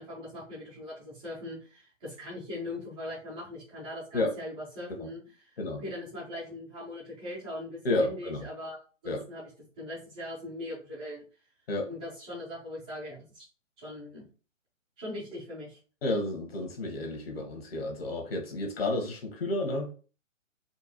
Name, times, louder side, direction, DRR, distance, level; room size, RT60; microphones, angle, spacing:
voice 1, 0.0-9.5 9.8-11.2 11.9-13.5 13.8-14.2 15.0-15.8, left 1 dB, 5° right, 0.5 m, -40 dB
voice 2, 7.8-8.5 9.0-9.2 11.7-11.9 16.0-19.9, left 2 dB, 50° left, 1.5 m, -31 dB
4.5 x 2.3 x 4.4 m
figure-of-eight pair, 135°, 39 cm